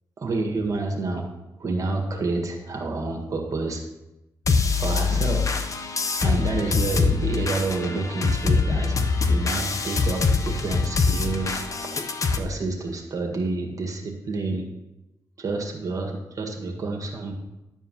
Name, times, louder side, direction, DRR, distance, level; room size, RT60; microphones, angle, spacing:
voice 1, 0.2-1.3 1.6-3.8 4.6-5.6 6.2-11.8 12.3-14.7 15.4-17.3, right 3 dB, 45° right, 2 dB, 1.7 m, -29 dB
sound 1, 4.5-12.4, left 4 dB, 40° left, 1.0 m, -24 dB
11.0 x 4.6 x 7.4 m, 0.96 s
cardioid pair, 85°, 8 cm